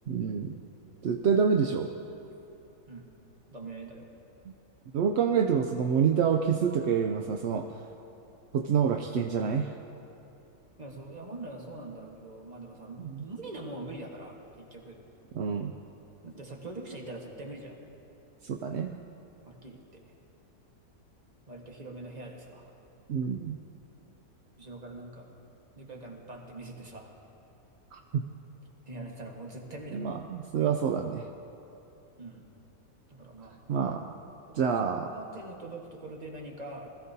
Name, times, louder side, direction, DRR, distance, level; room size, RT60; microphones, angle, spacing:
voice 1, 0.1-0.6 1.0-1.9 4.9-7.7 8.5-9.7 13.0-13.1 15.3-15.7 18.4-19.0 23.1-23.6 27.9-28.2 29.9-31.3 33.7-34.1 34.5-35.1, right 7 dB, 65° right, 4 dB, 0.7 m, -27 dB
voice 2, 3.5-4.1 10.8-15.0 16.2-17.9 19.5-20.1 21.5-22.7 24.6-25.3 25.7-27.1 28.9-30.2 32.2-32.5 33.1-33.7 34.5-36.9, right 2 dB, 30° right, 0 dB, 1.4 m, -43 dB
20.0 x 13.5 x 2.7 m, 2.9 s
omnidirectional pair, 1.6 m